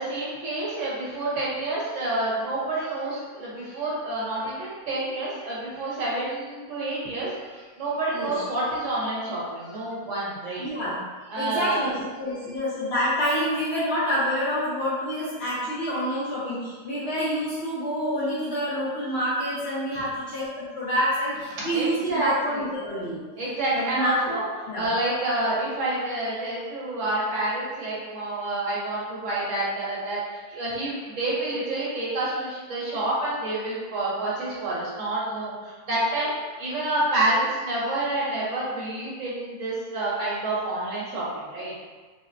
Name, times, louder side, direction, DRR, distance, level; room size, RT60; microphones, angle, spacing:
voice 1, 0.0-10.7 11.3-11.9 19.9-20.0 21.7-22.6 23.4-24.4 24.7-41.7, right 2 dB, 60° right, -7 dB, 1.1 m, -28 dB
voice 2, 10.6-11.0 11.3-23.2 23.7-24.1 24.7-24.9, equal, 60° left, -8 dB, 0.7 m, -27 dB
3.9 x 2.0 x 2.5 m, 1.4 s
omnidirectional pair, 1.6 m